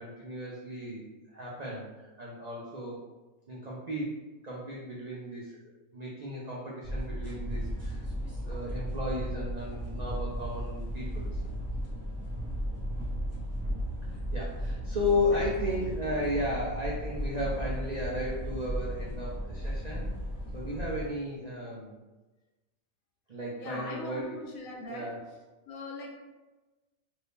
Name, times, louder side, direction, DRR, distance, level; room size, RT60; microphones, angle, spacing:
voice 1, 0.0-3.0 3.5-4.2 4.4-5.6 5.9-8.0 8.4-11.4 14.3-20.1 20.5-22.0 23.3-24.4 24.9-25.2, left 1 dB, 70° right, -5 dB, 0.4 m, -34 dB
sound 1, 6.8-21.1, equal, 10° right, 0.9 m, -35 dB
voice 2, 23.6-25.2 25.7-26.1, left 3 dB, 75° left, -1 dB, 1.1 m, -41 dB
2.8 x 2.6 x 3.4 m, 1.2 s
omnidirectional pair, 1.5 m